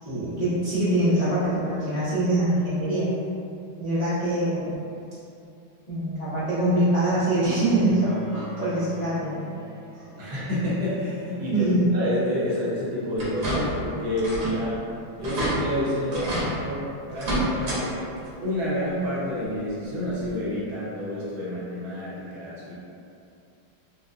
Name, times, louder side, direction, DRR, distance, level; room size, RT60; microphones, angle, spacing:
voice 1, 0.0-3.1 3.8-4.7 5.9-9.4 11.5-11.8, right 1 dB, 45° left, -15 dB, 0.4 m, -24 dB
Bowed string instrument, 7.5-13.5, right 2 dB, 75° left, 1.9 m, -44 dB
voice 2, 10.2-14.8 15.2-18.0 18.4-22.7, left 1 dB, 80° right, -9 dB, 1.7 m, -29 dB
sound 1, 13.2-13.9 14.2-14.6 14.9-15.0 15.2-15.5 16.1-16.5 17.1-17.8 18.2-18.3 19.7-19.8 20.3-20.4, right 1 dB, 55° right, 1.3 m, -28 dB
5.1 x 2.1 x 2.5 m, 2.6 s
omnidirectional pair, 2.2 m